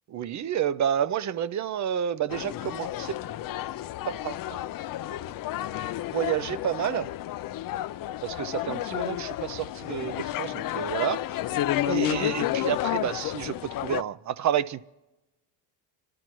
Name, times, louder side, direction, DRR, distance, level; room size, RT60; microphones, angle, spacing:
voice 1, 0.1-3.3 3.6-3.7 4.1-4.6 5.1-5.2 6.1-7.1 8.2-11.2 11.9-14.8, right 9 dB, 35° right, 0.5 m, -30 dB
sound 1, 2.3-14.0, left 13 dB, 45° left, 0.5 m, -31 dB
30.0 x 12.5 x 3.0 m
supercardioid pair, 85°, 49 cm